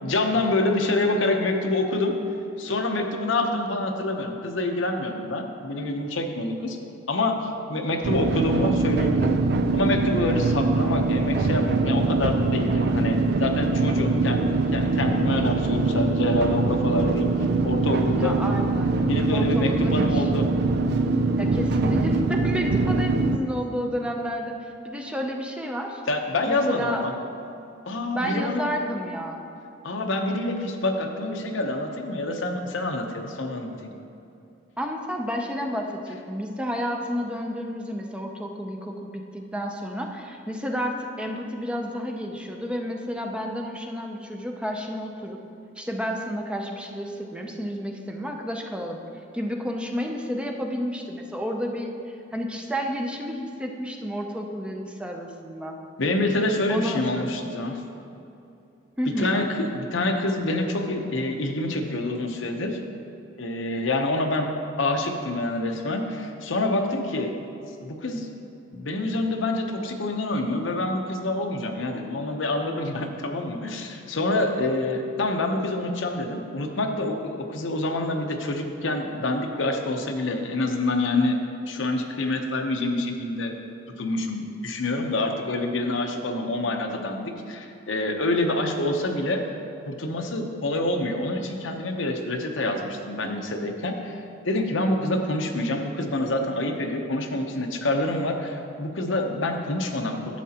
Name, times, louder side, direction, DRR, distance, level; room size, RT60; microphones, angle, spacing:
voice 1, 0.0-2.1 2.6-6.8 7.1-9.4 9.7-17.3 17.6-18.4 19.1-20.5 26.1-27.1 27.9-28.6 29.8-33.9 56.0-57.8 59.2-62.8 63.4-64.5 64.8-67.3 67.8-68.3 68.7-81.4 81.7-83.5 84.0-89.4 89.8-94.2 94.4-100.4, left 2 dB, 90° left, 3 dB, 0.9 m, -26 dB
sound 1, 8.0-23.4, right 3 dB, 60° right, 0.4 m, -23 dB
voice 2, 18.1-19.0 19.3-20.3 21.4-24.5 24.8-26.0 26.5-27.0 28.1-29.5 34.8-45.4 45.8-49.0 49.3-55.8 56.7-57.3 59.0-59.3, equal, 5° right, 2 dB, 0.6 m, -31 dB
11.5 x 7.5 x 2.9 m, 2.8 s
head